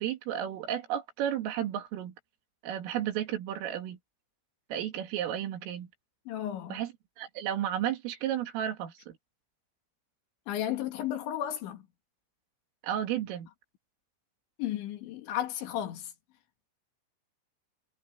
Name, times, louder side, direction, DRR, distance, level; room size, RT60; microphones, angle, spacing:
voice 1, 0.0-2.1 2.6-4.0 4.7-5.9 6.7-6.9 7.2-9.2 12.8-13.5, right 11 dB, 85° right, 4.9 m, -33 dB
voice 2, 6.3-6.8 10.5-11.9 14.6-16.1, left 11 dB, 70° left, 4.1 m, -33 dB
omnidirectional pair, 5.7 m